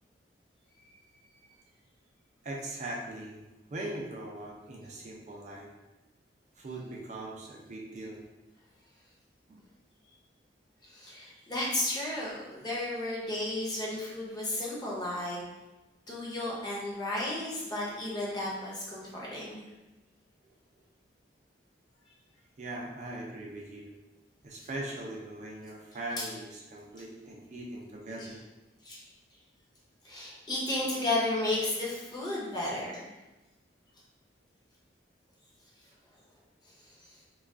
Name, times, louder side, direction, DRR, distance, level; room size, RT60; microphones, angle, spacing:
voice 1, 2.4-5.7 6.6-8.2 9.5-9.6 19.0-19.1 20.4-20.5 22.6-23.9 24.4-28.4, right 1 dB, 40° right, -2 dB, 0.4 m, -40 dB
voice 2, 10.8-15.4 16.1-19.7 26.2-26.3 28.2-28.3 28.8-29.0 30.0-33.1, left 1 dB, 20° left, -5 dB, 0.6 m, -33 dB
2.3 x 2.2 x 3.5 m, 1.1 s
head